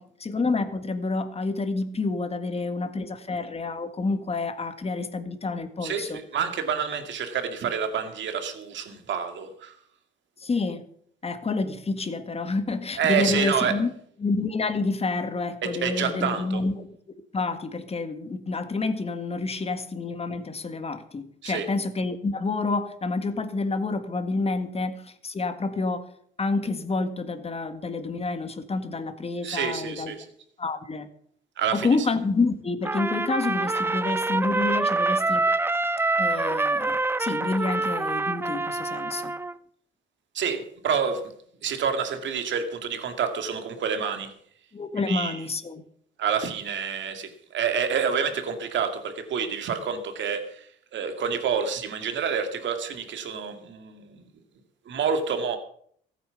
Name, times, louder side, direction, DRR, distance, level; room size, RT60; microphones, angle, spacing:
voice 1, 0.0-6.2 10.4-10.8 11.2-13.9 14.2-16.9 17.3-26.1 26.4-30.2 30.6-31.1 31.7-35.4 36.2-39.3 44.7-45.8, left 3 dB, 30° left, 9 dB, 1.7 m, -28 dB
voice 2, 5.8-9.7 13.0-13.7 15.6-16.6 21.4-21.7 29.4-30.2 31.6-31.9 40.3-41.2 41.6-44.3 45.0-45.4 46.2-50.7 50.9-54.2 54.9-55.6, right 7 dB, 70° right, 7 dB, 2.3 m, -28 dB
Trumpet, 32.8-39.6, right 2 dB, 10° right, 0.5 m, -26 dB
15.0 x 9.1 x 6.9 m, 0.63 s
cardioid pair, 90°, 20 cm